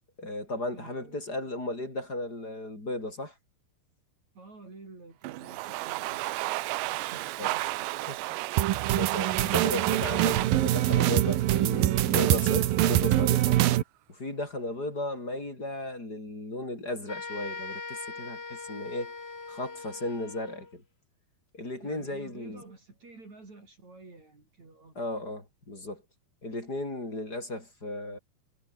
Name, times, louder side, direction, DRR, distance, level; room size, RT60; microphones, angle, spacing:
voice 1, 0.2-3.3 7.4-7.5 8.1-8.2 8.9-13.6 14.1-19.2 19.5-20.8 21.5-22.6 24.9-26.0 26.4-28.2, left 2 dB, 20° left, 6.7 m, -35 dB
voice 2, 0.7-1.3 4.3-6.7 6.9-8.0 21.8-25.0, right 3 dB, 40° right, 7.6 m, -50 dB
Domestic sounds home sounds, 5.2-12.1, right 19 dB, 90° right, 3.1 m, -33 dB
sound 1, 8.6-13.8, right 13 dB, 65° right, 2.6 m, -24 dB
sound 2, 17.1-20.7, left 4 dB, 65° left, 0.6 m, -41 dB
omnidirectional pair, 5.0 m